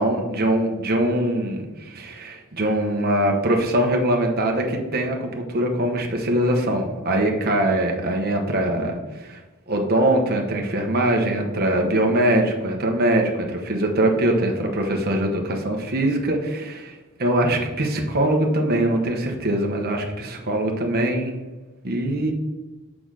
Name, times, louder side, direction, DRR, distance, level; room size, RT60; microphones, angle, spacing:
voice 1, 0.0-21.3 21.8-22.3, right 1 dB, 45° right, 2 dB, 1.2 m, -22 dB
6.2 x 5.0 x 6.3 m, 1.2 s
head